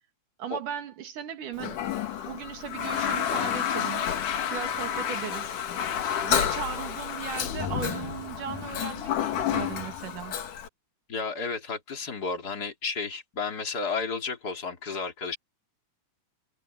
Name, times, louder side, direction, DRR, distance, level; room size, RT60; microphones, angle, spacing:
voice 1, 0.4-1.8 2.3-4.1 4.5-5.5 6.2-10.4, right 8 dB, 85° right, 3.8 m, -37 dB
Toilet flush, 1.6-10.7, left 9 dB, 80° left, 3.3 m, -30 dB
voice 2, 11.1-15.4, left 4 dB, 30° left, 3.4 m, -32 dB
omnidirectional pair, 3.5 m